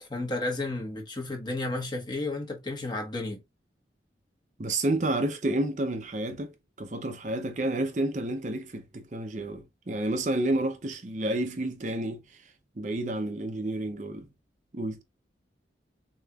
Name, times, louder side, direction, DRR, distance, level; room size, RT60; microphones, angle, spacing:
voice 1, 0.0-3.4, left 2 dB, 25° left, 1.3 m, -32 dB
voice 2, 4.6-14.3 14.7-15.0, right 1 dB, 40° right, 0.6 m, -30 dB
6.7 x 2.9 x 2.3 m
head